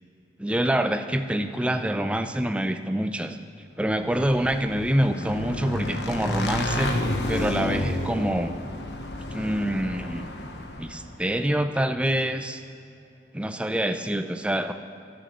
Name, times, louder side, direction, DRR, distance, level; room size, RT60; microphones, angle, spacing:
voice 1, 0.4-3.4 3.8-7.0 7.3-8.5 9.3-10.3 10.8-12.6 13.3-14.7, right 1 dB, 5° right, 8 dB, 0.5 m, -26 dB
Motorcycle / Engine, 3.9-11.2, left 1 dB, 75° left, 1.1 m, -30 dB
13.0 x 8.2 x 6.6 m, 2.6 s
head